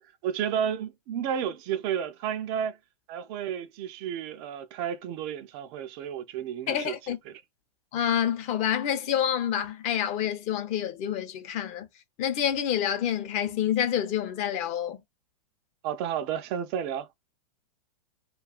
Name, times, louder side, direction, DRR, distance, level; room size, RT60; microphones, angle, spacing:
voice 1, 0.2-2.8 3.1-7.0 7.3-7.4 15.8-17.2, right 9 dB, 40° right, 0.4 m, -32 dB
voice 2, 6.7-7.2 7.9-11.9 12.2-15.0, left 9 dB, 35° left, 0.6 m, -28 dB
2.7 x 2.3 x 2.3 m
hypercardioid pair, 115°, 20 cm